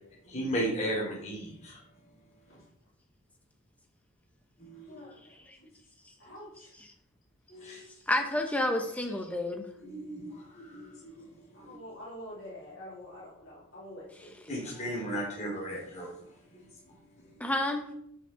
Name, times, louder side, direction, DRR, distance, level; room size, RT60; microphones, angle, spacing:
voice 1, 0.2-1.8 4.6-5.1 6.3-6.4 7.5-7.8 9.8-11.8 14.5-16.7 17.2-17.5, equal, 30° left, -4 dB, 3.3 m, -36 dB
voice 2, 4.9-5.7 6.2-6.7 7.6-8.0 11.5-14.3, left 1 dB, 60° left, -6 dB, 3.3 m, -47 dB
voice 3, 8.1-9.7 17.4-17.9, left 1 dB, 5° left, 3 dB, 1.0 m, -30 dB
6.7 x 6.1 x 7.0 m, 0.73 s
head